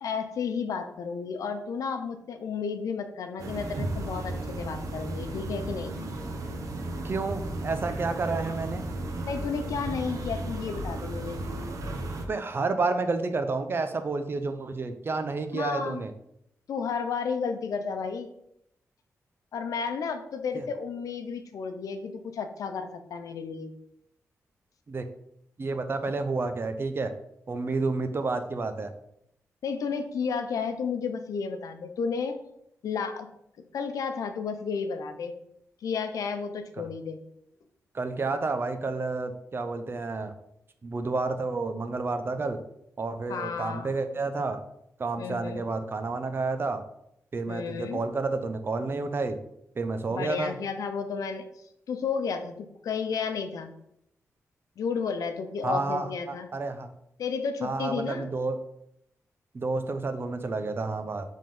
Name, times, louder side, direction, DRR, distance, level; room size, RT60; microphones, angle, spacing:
voice 1, 0.0-6.0 9.3-11.4 15.5-16.0 16.7-18.3 19.5-23.7 29.6-32.4 32.8-33.3 33.7-35.3 35.8-37.2 43.3-43.9 45.2-45.6 47.5-48.0 50.1-53.7 54.8-56.5 57.2-58.3, left 5 dB, 85° left, 7 dB, 0.7 m, -32 dB
sound 1, 3.4-12.2, right 2 dB, 75° right, 1.0 m, -34 dB
voice 2, 7.0-8.8 12.3-16.1 20.5-20.6 24.9-25.0 25.6-27.1 27.5-28.9 36.8-36.9 37.9-40.4 40.8-42.6 43.0-44.6 45.0-46.8 47.3-49.4 49.8-50.6 55.6-56.9 57.6-58.6 59.5-61.2, right 3 dB, 40° right, 8 dB, 0.7 m, -30 dB
5.4 x 3.7 x 5.3 m, 0.76 s
cardioid pair, 90°, 6 cm